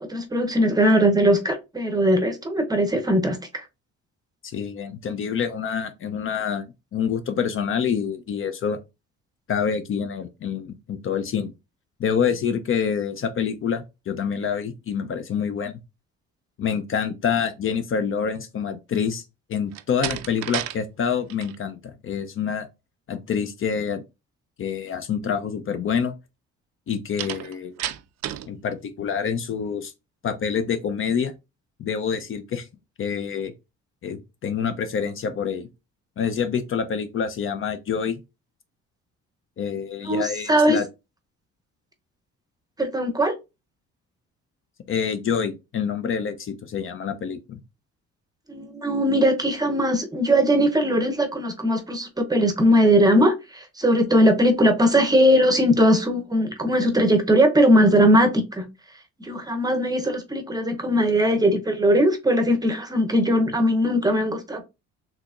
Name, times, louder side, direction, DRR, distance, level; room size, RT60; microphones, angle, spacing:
voice 1, 0.0-3.6 40.1-40.8 42.8-43.3 48.5-58.7 59.2-64.6, equal, 15° right, 0.7 m, -20 dB
voice 2, 4.4-6.6 6.9-8.8 9.5-11.5 12.0-15.7 16.6-19.2 19.5-22.7 23.1-24.0 24.6-26.1 26.9-27.8 28.5-29.9 30.2-31.3 31.8-32.7 33.0-33.5 34.0-35.7 36.2-38.2 39.6-40.9 44.9-47.6, left 7 dB, 45° left, 0.5 m, -27 dB
Slam, 19.7-20.8 21.1-21.6 27.2-28.5, right 13 dB, 65° right, 0.4 m, -31 dB
3.9 x 3.0 x 2.4 m
cardioid pair, 90°, 29 cm